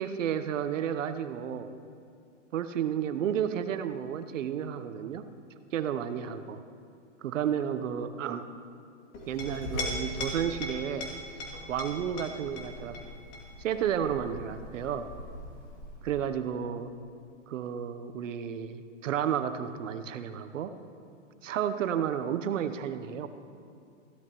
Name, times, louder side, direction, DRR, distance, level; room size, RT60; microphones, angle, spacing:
voice 1, 0.0-1.7 2.5-5.2 5.7-6.6 7.2-8.4 9.3-11.1 11.7-13.0 13.6-15.1 16.0-16.9 17.5-20.7 21.4-23.3, right 9 dB, 80° right, 10 dB, 0.9 m, -32 dB
Chink clink, 9.1-16.2, left 1 dB, 35° left, 2.6 m, -39 dB
15.5 x 12.5 x 3.0 m, 2.4 s
hypercardioid pair, 140°, 37 cm